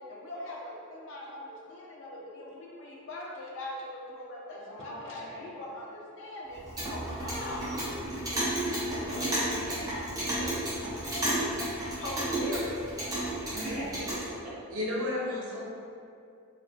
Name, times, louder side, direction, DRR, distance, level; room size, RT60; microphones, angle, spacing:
voice 1, 0.1-6.6 6.9-8.0 10.4-10.5 11.7-12.8, left 1 dB, 55° left, -4 dB, 0.4 m, -41 dB
voice 2, 4.6-5.5 7.4-8.4 8.8-9.8 13.3-14.2, equal, 30° right, -10 dB, 0.9 m, -42 dB
Clock, 6.5-14.3, right 1 dB, 15° right, 0.5 m, -32 dB
voice 3, 14.7-15.6, left 1 dB, 75° right, -4 dB, 0.6 m, -32 dB
2.3 x 2.2 x 2.8 m, 2.4 s
head